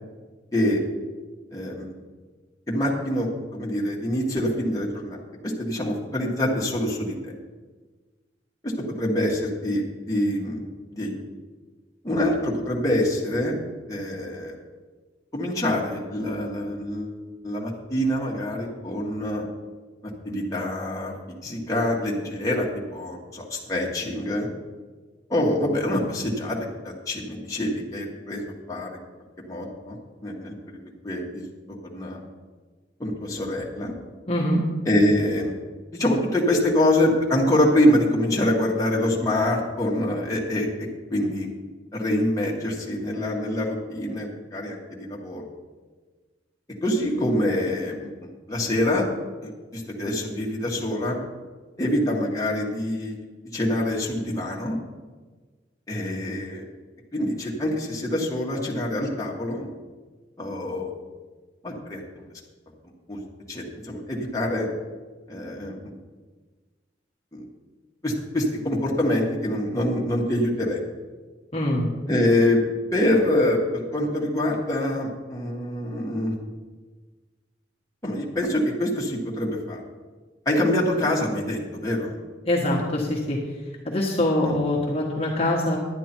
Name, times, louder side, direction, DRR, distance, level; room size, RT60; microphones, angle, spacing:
voice 1, 1.5-1.9 2.7-5.2 5.4-7.3 8.6-10.6 10.9-11.1 12.0-13.5 13.9-14.6 15.3-17.1 17.4-19.5 20.2-22.7 22.9-24.5 25.3-26.6 26.8-28.4 28.7-29.0 29.5-30.0 30.2-30.8 31.0-31.4 31.9-32.2 33.0-33.9 34.8-35.5 35.9-40.7 41.1-41.5 41.9-45.4 46.8-49.0 49.4-51.2 51.8-53.1 53.5-54.8 55.9-56.6 57.1-59.7 60.4-60.9 61.6-62.0 63.1-63.2 63.5-64.7 65.3-65.9 67.3-67.4 68.0-70.8 72.1-72.6 72.9-76.3 78.0-79.8 80.4-82.2 84.4-84.5, left 1 dB, 20° left, -3 dB, 1.8 m, -25 dB
voice 2, 34.3-34.6 71.5-71.9 82.4-83.4 83.8-85.8, left 1 dB, 35° left, -3 dB, 1.5 m, -23 dB
11.0 x 9.6 x 4.5 m, 1.4 s
head